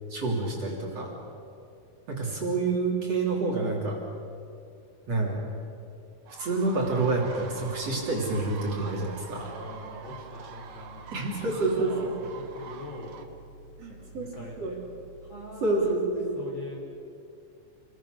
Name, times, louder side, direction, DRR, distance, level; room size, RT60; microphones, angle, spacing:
voice 1, 0.1-1.1 2.1-4.0 5.1-5.4 6.4-9.5 11.1-12.1 13.8-14.3 14.6-14.7 15.6-16.4, right 3 dB, 45° right, -2 dB, 4.1 m, -28 dB
sound 1, 6.3-13.2, right 7 dB, 65° right, 3.0 m, -45 dB
sound 2, 6.6-15.9, right 2 dB, 65° left, 9.0 m, -51 dB
voice 2, 9.5-13.1 13.9-14.8 15.2-15.8 16.3-16.8, left 1 dB, 30° left, -2 dB, 4.8 m, -43 dB
29.0 x 21.0 x 6.6 m, 2.5 s
omnidirectional pair, 4.3 m